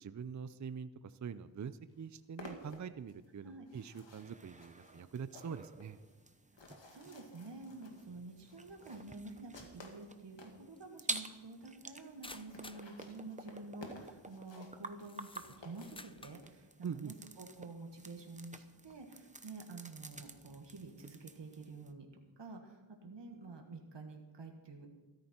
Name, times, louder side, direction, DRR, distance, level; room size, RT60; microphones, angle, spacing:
voice 1, 0.0-6.0 16.8-17.1, right 6 dB, 40° right, 13 dB, 0.5 m, -44 dB
sound 1, 1.4-1.5 1.8-10.6 11.2-11.3 11.5-11.6 11.8-11.9 12.1-16.5, left 2 dB, 70° left, 2.2 m, -55 dB
sound 2, 4.2-21.9, right 2 dB, 15° right, 0.8 m, -50 dB
voice 2, 6.6-22.1 22.4-24.9, right 3 dB, 65° right, 3 dB, 1.8 m, -49 dB
sound 3, 10.8-10.9 12.2-12.9 13.8-14.1 14.8-16.5, left 2 dB, 10° left, 0.6 m, -53 dB
14.0 x 13.0 x 4.4 m, 1.2 s
wide cardioid pair, 70°, 46 cm